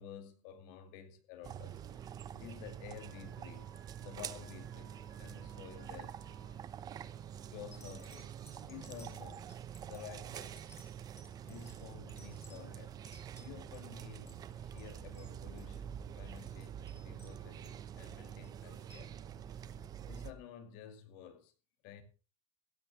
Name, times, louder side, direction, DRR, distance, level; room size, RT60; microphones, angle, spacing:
voice 1, 0.0-3.7 4.0-6.2 7.5-8.3 8.6-9.6 9.8-10.6 11.4-13.0 13.4-19.2 19.5-21.5 21.8-22.0, left 9 dB, 55° left, 2.3 m, -52 dB
sound 1, 1.4-20.3, right 9 dB, 25° right, 0.8 m, -46 dB
Alarm, 3.0-6.5, right 7 dB, 60° right, 4.1 m, -62 dB
sound 2, 6.9-7.1 7.7-13.9 14.2-14.5 14.8-14.9 15.1-15.3 15.6-15.8 16.2-17.8 18.4-19.1 19.9-20.0, left 2 dB, 15° left, 4.2 m, -61 dB
16.5 x 13.5 x 3.5 m
supercardioid pair, 160°, 15 cm